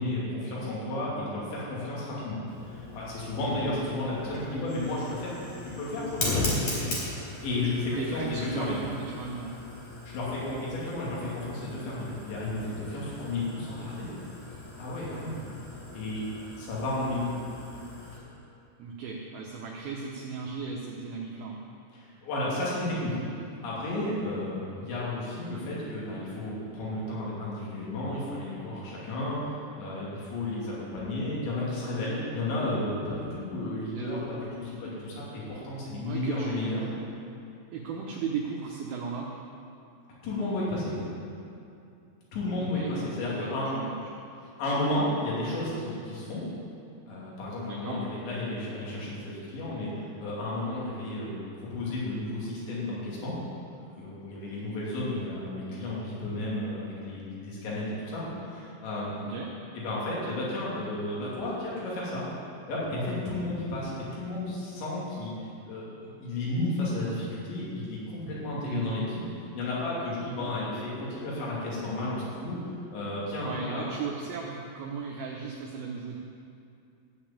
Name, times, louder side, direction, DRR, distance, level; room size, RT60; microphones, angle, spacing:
voice 1, 0.0-2.4 2.6-5.3 5.6-7.0 7.4-8.8 10.1-14.1 14.8-15.4 15.9-16.2 16.6-17.4 21.9-23.1 23.6-36.9 40.2-41.0 42.3-43.7 44.6-46.4 47.1-53.4 54.0-59.1 59.7-62.3 62.7-65.3 65.6-69.0 69.5-73.9, left 1 dB, 75° left, -7 dB, 5.0 m, -32 dB
Fire, 2.5-18.2, left 2 dB, 40° left, 4.2 m, -38 dB
voice 2, 7.9-9.5 18.8-21.6 33.9-34.2 36.0-36.7 37.7-39.3 42.6-42.9 43.2-43.9 47.7-48.0 59.1-59.5 68.6-69.0 73.4-76.2, right 5 dB, 75° right, -2 dB, 2.2 m, -36 dB
14.5 x 5.2 x 8.8 m, 2.6 s
omnidirectional pair, 5.3 m